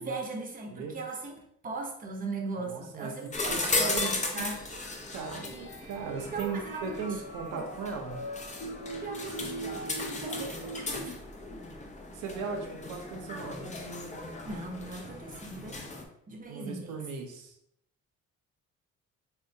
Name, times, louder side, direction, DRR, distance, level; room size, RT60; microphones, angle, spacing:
voice 1, 0.0-1.4 1.6-4.6 6.3-7.0 7.5-7.6 9.0-11.2 14.4-16.0 16.3-17.0, right 3 dB, 30° right, 1 dB, 0.7 m, -38 dB
voice 2, 2.6-3.1 3.5-4.0 4.3-4.5 5.1-8.2 12.1-13.7 16.5-17.6, right 5 dB, 90° right, 3 dB, 0.6 m, -38 dB
sound 1, 3.0-11.1, right 2 dB, 45° left, 0.8 m, -43 dB
sound 2, 3.3-16.0, left 2 dB, 25° left, 0.5 m, -36 dB
3.5 x 2.1 x 2.6 m, 0.73 s
cardioid pair, 90°, 30 cm